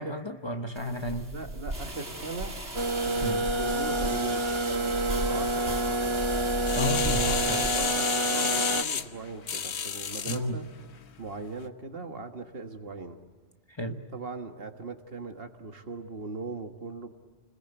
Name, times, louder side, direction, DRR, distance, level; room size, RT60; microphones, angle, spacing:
voice 1, 0.0-1.3 3.2-3.5 6.7-7.7 10.3-10.6 13.7-14.0, left 1 dB, 25° left, 6 dB, 1.1 m, -33 dB
sound 1, 0.7-7.9, right 1 dB, 80° right, 5.2 m, -36 dB
voice 2, 1.3-2.5 3.0-6.1 6.8-10.7 11.2-13.2 14.1-17.1, right 3 dB, 60° right, 6 dB, 1.7 m, -39 dB
sound 2, 2.8-8.8, right 1 dB, 30° right, 0.8 m, -28 dB
sound 3, 6.6-10.4 11.0-11.1, left 7 dB, 75° left, 1.2 m, -30 dB
30.0 x 21.0 x 7.9 m, 1.5 s
omnidirectional pair, 1.2 m